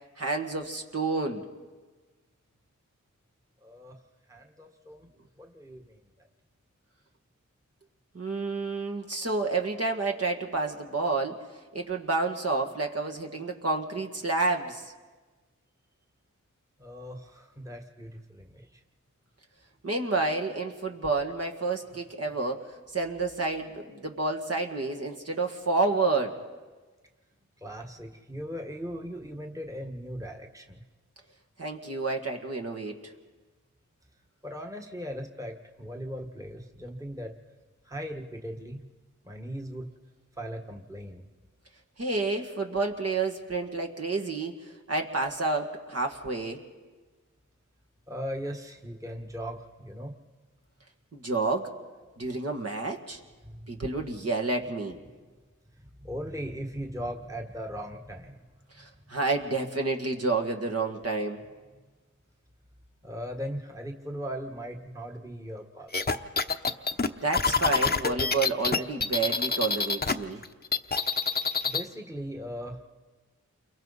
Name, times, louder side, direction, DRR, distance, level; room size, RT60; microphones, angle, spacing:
voice 1, 0.2-1.4 8.1-11.4 11.7-14.9 19.8-22.6 22.9-26.4 31.6-33.0 42.0-44.6 44.9-46.6 51.1-51.7 52.2-53.2 53.7-55.0 58.8-61.4 67.2-70.4, right 3 dB, 50° right, 2 dB, 2.0 m, -29 dB
voice 2, 3.6-4.0 4.3-5.1 5.4-6.0 16.8-18.8 27.6-30.8 34.4-37.4 37.8-38.9 39.2-39.9 40.4-41.2 48.1-50.1 53.4-53.6 55.7-58.4 63.0-66.0 70.3-70.4 71.6-72.8, equal, 10° right, 2 dB, 1.6 m, -38 dB
sound 1, 65.9-70.1 70.4-71.9, left 4 dB, 30° left, 0.9 m, -26 dB
29.0 x 23.0 x 4.2 m, 1.3 s
cardioid pair, 50°, 31 cm